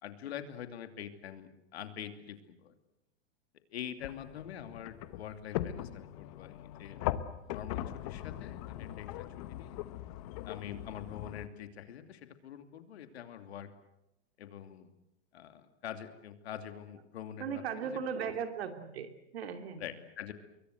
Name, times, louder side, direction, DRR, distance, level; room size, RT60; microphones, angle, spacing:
voice 1, 0.0-2.7 3.7-7.0 7.5-9.8 10.5-13.7 14.4-14.9 15.3-18.0 19.8-20.3, left 9 dB, 65° left, 8 dB, 2.7 m, -45 dB
sound 1, 4.0-11.5, left 13 dB, 30° left, 0.9 m, -40 dB
voice 2, 17.4-19.8, right 7 dB, 65° right, 7 dB, 2.9 m, -37 dB
26.0 x 23.0 x 7.9 m, 0.88 s
supercardioid pair, 170°, 34 cm